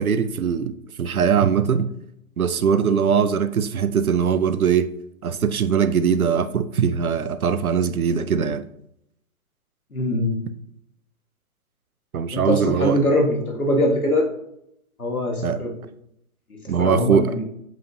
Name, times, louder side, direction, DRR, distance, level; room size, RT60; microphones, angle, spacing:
voice 1, 0.0-1.9 2.4-4.9 5.2-8.6 12.1-13.0 15.4-15.6 16.7-17.3, right 7 dB, 75° right, 11 dB, 0.6 m, -21 dB
voice 2, 9.9-10.4 12.3-14.3 15.0-15.7 16.5-17.4, left 1 dB, 80° left, 2 dB, 1.7 m, -22 dB
7.5 x 5.1 x 2.7 m, 0.78 s
figure-of-eight pair, 130°, 43 cm